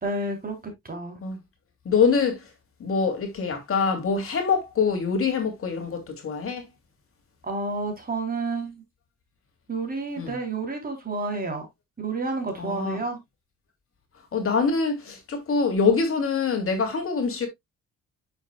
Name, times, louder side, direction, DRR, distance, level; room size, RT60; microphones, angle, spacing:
voice 1, 0.0-1.2 7.4-8.8 9.7-11.7 12.0-13.2, right 3 dB, 30° right, 3.5 m, -30 dB
voice 2, 1.8-2.4 2.8-6.6 10.2-10.4 12.6-13.0 14.3-17.5, left 5 dB, 45° left, 2.6 m, -24 dB
9.0 x 6.5 x 2.2 m
cardioid pair, 90°, 30 cm